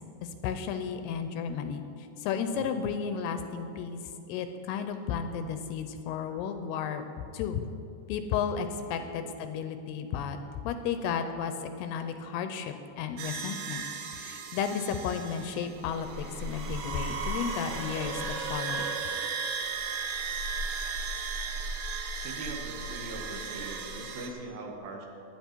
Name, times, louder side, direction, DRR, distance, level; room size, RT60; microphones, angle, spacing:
voice 1, 0.2-4.0 4.3-7.0 7.3-7.6 8.1-10.4 10.6-13.8 14.2-18.9, left 7 dB, 80° left, 8 dB, 2.5 m, -33 dB
voice 2, 6.0-6.4 8.9-9.1 10.1-10.2 15.4-15.5 22.2-25.1, right 2 dB, 65° right, 0 dB, 2.9 m, -42 dB
sound 1, 13.2-24.3, right 4 dB, 90° right, 1.6 m, -35 dB
16.0 x 11.0 x 4.5 m, 2.6 s
omnidirectional pair, 4.9 m